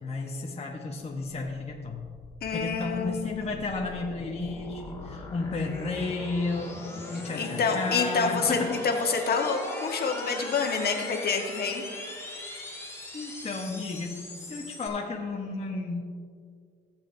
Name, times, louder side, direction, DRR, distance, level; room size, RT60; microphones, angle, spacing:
voice 1, 0.0-2.2 2.5-6.8 7.1-8.8 13.1-16.0, left 3 dB, 30° left, -1 dB, 1.0 m, -33 dB
sound 1, 2.1-14.9, left 2 dB, 15° left, 1.9 m, -40 dB
voice 2, 2.4-3.5 7.4-8.6 8.8-11.8, left 5 dB, 50° left, 2 dB, 1.4 m, -28 dB
16.5 x 7.4 x 2.7 m, 2.2 s
cardioid pair, 90°, 20 cm